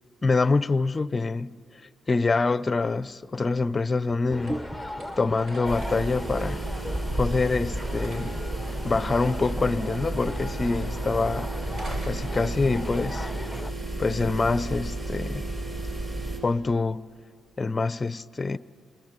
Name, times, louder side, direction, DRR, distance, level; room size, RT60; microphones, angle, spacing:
voice 1, 0.2-1.6 2.1-4.6 5.2-6.6 7.1-8.3 8.8-11.5 12.0-13.3 14.0-15.5 16.4-17.1 17.6-18.6, left 3 dB, 25° left, 0.6 m, -25 dB
sound 1, 3.1-13.8, right 1 dB, 60° right, 7.4 m, -47 dB
sound 2, 4.3-13.7, left 1 dB, ahead, 1.0 m, -37 dB
sound 3, 5.6-16.4, right 1 dB, 30° right, 6.5 m, -32 dB
28.5 x 21.0 x 9.1 m
cardioid pair, 90°, 0 cm